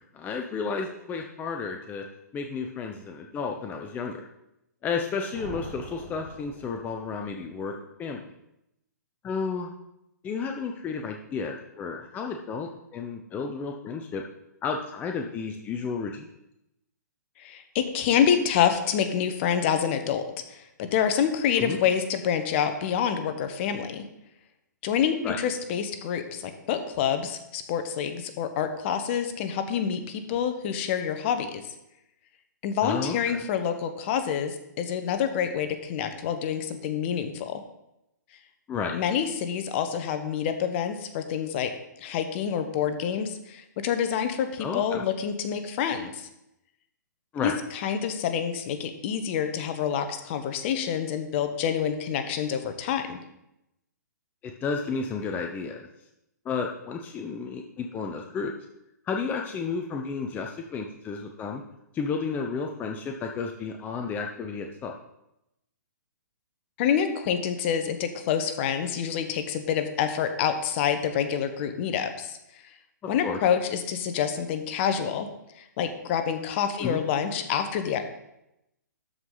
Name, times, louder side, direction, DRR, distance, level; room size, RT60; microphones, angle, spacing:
voice 1, 0.1-2.0 2.3-4.3 4.8-7.7 8.0-8.2 9.2-9.7 10.2-14.2 14.6-16.3 21.6-21.8 25.2-25.4 32.8-33.4 38.7-39.0 44.6-45.0 47.3-47.5 54.4-55.9 56.4-58.5 59.0-61.6 61.9-64.9 73.0-73.4 76.8-77.0, left 5 dB, 15° left, 3 dB, 0.7 m, -32 dB
sound 1, 5.3-7.3, right 3 dB, 45° right, 2.0 m, -43 dB
voice 2, 17.4-24.0 24.8-31.6 32.6-37.6 38.9-41.7 42.0-46.3 47.4-53.2 66.8-72.4 73.1-75.3 75.6-78.1, left 8 dB, 40° left, 8 dB, 1.0 m, -27 dB
12.5 x 4.9 x 3.9 m, 0.86 s
hypercardioid pair, 130°, 10 cm